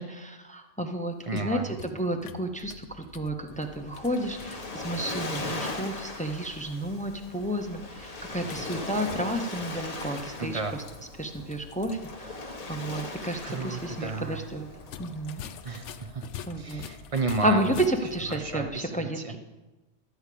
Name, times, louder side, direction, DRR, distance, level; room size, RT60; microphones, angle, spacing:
voice 1, 0.0-10.6 11.2-14.7 15.0-15.5 16.5-16.8 17.4-19.4, right 1 dB, 10° left, 5 dB, 0.6 m, -31 dB
sound 1, 1.1-5.8 8.4-12.2 12.5-12.6 14.8-18.5, left 9 dB, 80° left, 0.9 m, -46 dB
voice 2, 1.2-1.7 10.4-10.8 13.4-14.4 15.6-16.2 16.6-17.6 18.3-19.4, right 3 dB, 30° right, 6 dB, 0.8 m, -33 dB
sound 2, 2.6-18.8, left 2 dB, 50° right, 3.4 m, -53 dB
Waves surf, 3.6-16.0, left 2 dB, 35° left, 0.9 m, -39 dB
12.5 x 4.8 x 8.4 m, 1.1 s
omnidirectional pair, 1.2 m